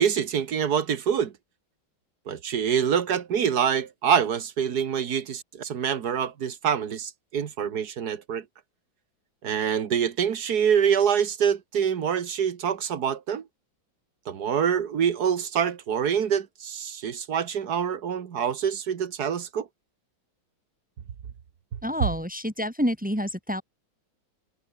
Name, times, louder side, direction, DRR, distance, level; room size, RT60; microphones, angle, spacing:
voice 1, 0.0-1.3 2.3-8.4 9.4-13.4 14.3-19.7 21.7-21.8, right 8 dB, 55° right, 1.8 m, -25 dB
voice 2, 21.8-23.6, equal, 5° right, 7.0 m, -28 dB
omnidirectional pair, 2.2 m